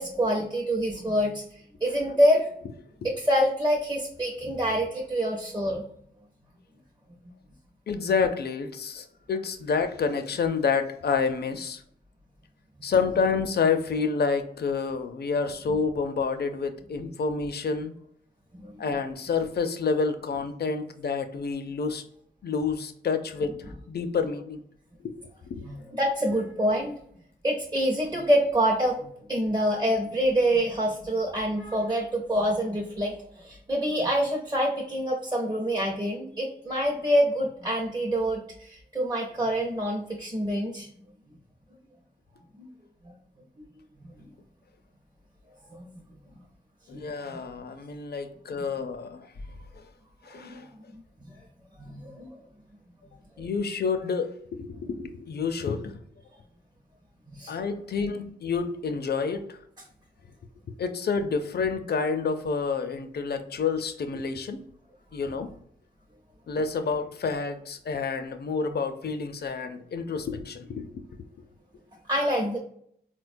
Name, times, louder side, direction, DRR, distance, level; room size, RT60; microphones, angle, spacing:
voice 1, 0.0-1.4 1.8-2.5 3.0-5.8 18.5-18.8 25.6-26.9 27.4-40.9 42.6-42.7 43.0-43.1 44.0-44.1 45.7-45.9 46.9-47.0 47.3-47.4 48.8-48.9 50.3-50.6 51.8-52.4 57.3-57.5 72.1-72.6, equal, 20° right, -2 dB, 0.6 m, -26 dB
voice 2, 7.9-11.8 12.8-17.9 18.8-22.0 22.4-24.6 25.0-25.2 25.5-25.7 46.9-49.3 50.2-50.6 53.4-56.0 57.5-59.6 60.8-64.6 65.1-65.5 66.5-71.0 71.4-71.5, left 5 dB, 65° left, 8 dB, 0.4 m, -29 dB
4.1 x 2.2 x 2.5 m, 0.66 s
wide cardioid pair, 85°, 18 cm